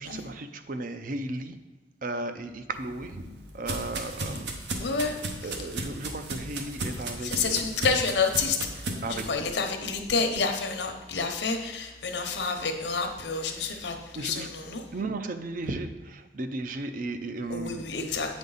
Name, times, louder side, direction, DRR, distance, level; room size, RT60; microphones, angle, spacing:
voice 1, 0.0-1.6 2.0-3.2 3.5-4.6 5.1-5.2 5.4-7.6 9.0-9.4 14.1-14.5 14.9-17.9, right 2 dB, 50° right, 8 dB, 0.5 m, -35 dB
sound 1, 2.7-9.3, right 2 dB, 75° right, 0.9 m, -35 dB
voice 2, 4.8-5.2 5.4-5.5 7.2-14.8 17.5-18.4, left 4 dB, 80° left, 5 dB, 0.9 m, -29 dB
8.2 x 5.2 x 4.0 m, 1.2 s
head